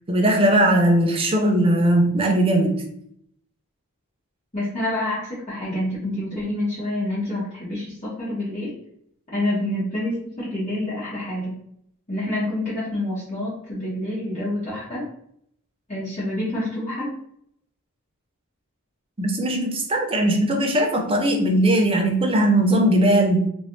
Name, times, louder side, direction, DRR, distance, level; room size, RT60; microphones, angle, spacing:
voice 1, 0.1-2.9 19.2-23.5, right 1 dB, 25° right, 2 dB, 0.5 m, -19 dB
voice 2, 4.5-8.7 9.3-11.6 12.1-15.0 15.9-17.1, left 1 dB, 35° left, -11 dB, 1.3 m, -27 dB
3.1 x 2.5 x 3.1 m, 0.68 s
head